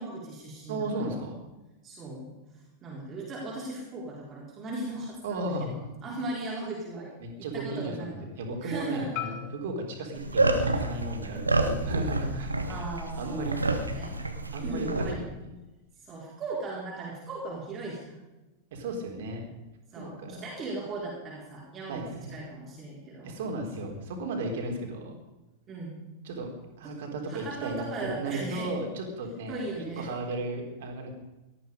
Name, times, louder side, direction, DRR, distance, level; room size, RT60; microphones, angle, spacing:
voice 1, 0.0-1.3 1.8-2.3 2.8-7.1 7.5-8.3 8.6-9.3 12.7-14.2 14.6-15.2 16.1-18.2 19.9-22.0 22.3-23.4 25.7-26.0 27.3-28.7 29.5-30.1, right 2 dB, 25° right, -4 dB, 4.2 m, -38 dB
voice 2, 0.7-1.4 5.2-5.7 7.2-12.5 13.2-13.6 14.5-15.6 18.7-19.4 20.0-20.5 21.9-22.5 23.2-25.2 26.2-26.5 26.8-29.6 30.0-31.1, right 2 dB, 55° right, 2 dB, 3.7 m, -35 dB
Marimba xylophone, 9.2-13.3, left 11 dB, 45° left, 1.3 m, -44 dB
sound 1, 10.1-15.1, right 2 dB, 80° right, 1.6 m, -28 dB
18.5 x 13.0 x 5.2 m, 1.1 s
figure-of-eight pair, 90°, 0 cm